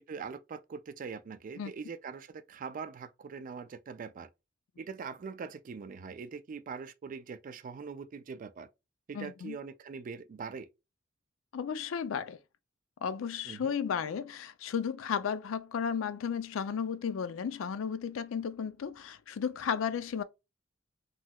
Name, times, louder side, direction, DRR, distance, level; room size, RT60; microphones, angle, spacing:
voice 1, 0.1-4.3 4.8-8.7 9.1-10.7 13.5-13.7, right 5 dB, 45° right, 0.3 m, -42 dB
voice 2, 9.1-9.6 11.5-12.4 13.0-20.2, left 7 dB, 85° left, 0.4 m, -34 dB
3.1 x 2.8 x 2.2 m
head